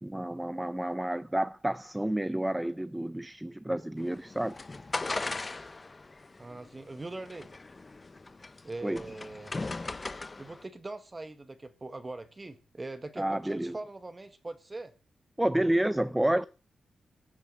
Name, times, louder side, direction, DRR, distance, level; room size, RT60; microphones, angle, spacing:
voice 1, 0.0-4.6 8.8-9.0 13.2-13.8 15.4-16.4, right 1 dB, 10° right, 0.7 m, -30 dB
sound 1, 4.0-10.6, left 3 dB, 30° left, 1.0 m, -39 dB
voice 2, 6.4-7.5 8.6-9.5 10.4-14.9, right 2 dB, 30° right, 1.7 m, -41 dB
15.5 x 7.5 x 7.7 m
cardioid pair, 60°, 0 cm